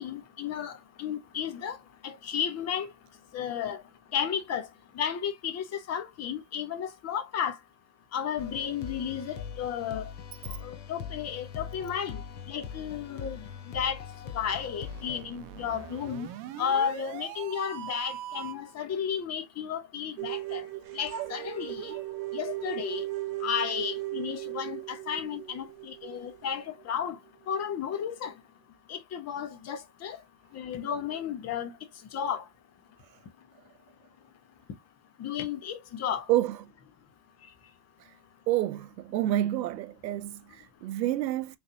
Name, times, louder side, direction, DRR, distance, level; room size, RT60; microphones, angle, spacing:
voice 1, 0.0-1.8 2.0-2.9 3.3-3.8 4.1-4.7 5.0-7.6 8.1-10.1 10.6-12.2 12.5-13.4 13.7-14.0 14.3-16.3 16.6-20.6 20.9-21.9 22.3-23.0 23.4-27.2 27.5-28.3 28.9-30.2 30.5-31.7 32.1-32.4 35.2-36.2, left 8 dB, 30° left, 0.9 m, -33 dB
sound 1, 8.4-15.2, left 7 dB, 90° left, 0.9 m, -41 dB
sound 2, 14.8-18.7, right 12 dB, 40° right, 0.6 m, -42 dB
sound 3, 20.2-27.1, right 17 dB, 70° right, 1.0 m, -37 dB
voice 2, 38.5-41.6, right 14 dB, 90° right, 0.6 m, -28 dB
3.9 x 3.3 x 2.6 m
hypercardioid pair, 100°, 50 cm